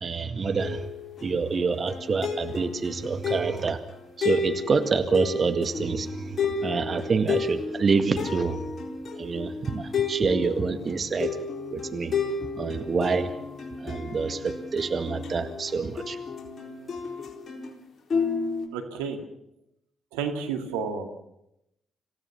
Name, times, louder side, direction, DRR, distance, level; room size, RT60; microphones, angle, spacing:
voice 1, 0.0-0.9 1.2-3.8 4.2-8.6 9.2-11.4 11.7-12.1 12.6-13.3 13.8-16.2, right 4 dB, 45° right, 8 dB, 2.0 m, -27 dB
sound 1, 0.6-17.7 18.1-18.7, left 5 dB, 50° left, 4.2 m, -32 dB
voice 2, 18.7-19.2 20.1-21.1, right 6 dB, 85° right, 5 dB, 2.3 m, -31 dB
27.0 x 16.5 x 7.3 m, 0.82 s
hypercardioid pair, 45°, 0 cm